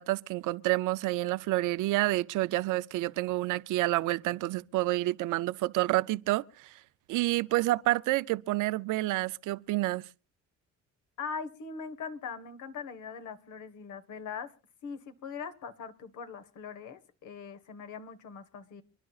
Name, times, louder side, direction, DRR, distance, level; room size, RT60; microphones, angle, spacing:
voice 1, 0.0-6.7 7.1-10.0, right 18 dB, 90° right, 0.6 m, -29 dB
voice 2, 11.2-14.5 14.8-18.8, left 6 dB, 80° left, 1.5 m, -41 dB
29.0 x 11.0 x 2.4 m
cardioid pair, 90°, 30 cm